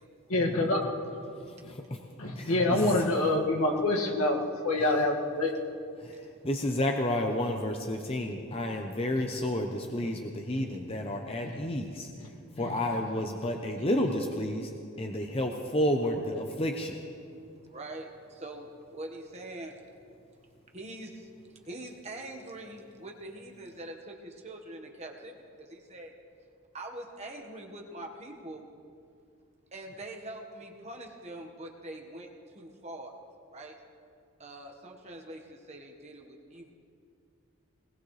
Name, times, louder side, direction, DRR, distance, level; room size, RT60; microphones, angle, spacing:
voice 1, 0.3-0.8 1.6-1.7 2.2-5.5 11.4-11.6 12.6-12.7, left 2 dB, 85° left, -1 dB, 2.0 m, -26 dB
voice 2, 1.7-2.1 2.3-3.0 6.0-14.7 15.0-17.0, left 1 dB, 25° left, 3 dB, 0.8 m, -31 dB
voice 3, 6.0-6.5 17.6-19.7 20.7-26.1 26.7-28.7 29.7-33.1 33.5-33.8 34.4-36.7, right 1 dB, 30° right, 1 dB, 1.4 m, -44 dB
21.0 x 20.0 x 3.3 m, 2.4 s
head